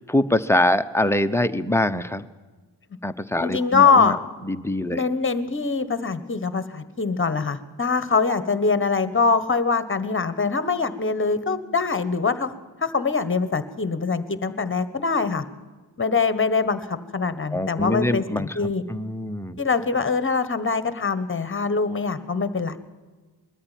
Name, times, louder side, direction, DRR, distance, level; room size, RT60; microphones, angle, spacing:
voice 1, 0.0-2.3 3.0-4.1 4.5-5.0 17.5-19.6, left 1 dB, 5° left, 8 dB, 0.7 m, -24 dB
voice 2, 3.4-4.2 4.9-12.5 12.8-15.4 16.0-18.8 19.6-22.8, left 4 dB, 25° left, 13 dB, 1.3 m, -23 dB
21.5 x 13.5 x 9.1 m, 1.3 s
wide cardioid pair, 120°, 45 cm